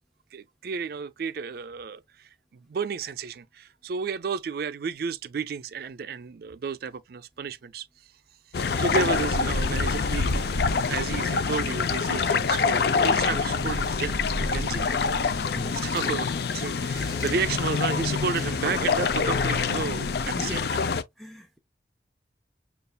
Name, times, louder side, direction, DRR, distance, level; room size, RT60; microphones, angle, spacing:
voice 1, 0.3-8.1 8.5-14.9 15.8-20.8, right 5 dB, 55° right, 0.4 m, -32 dB
sound 1, 8.5-21.0, left 5 dB, 60° left, 0.4 m, -26 dB
sound 2, 12.1-13.0 13.4-14.3 14.6-15.3 15.6-16.4 16.8-17.6 18.0-19.0, left 1 dB, 20° left, 0.9 m, -47 dB
voice 2, 15.5-15.9 20.4-20.7 21.2-21.6, equal, ahead, 0.5 m, -40 dB
6.5 x 2.4 x 2.2 m
head